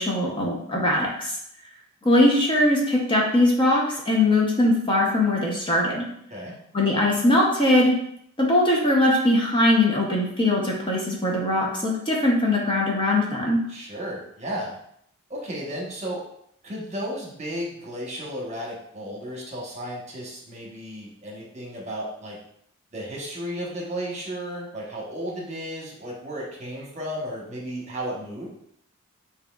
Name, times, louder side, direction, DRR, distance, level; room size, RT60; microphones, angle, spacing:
voice 1, 0.0-1.4 2.0-6.0 6.7-7.9 8.4-13.6, left 1 dB, 25° left, -2 dB, 0.8 m, -21 dB
voice 2, 13.7-14.8 15.3-16.2 16.6-22.4 22.9-28.5, equal, 30° right, -4 dB, 1.2 m, -34 dB
7.3 x 2.9 x 2.4 m, 0.70 s
head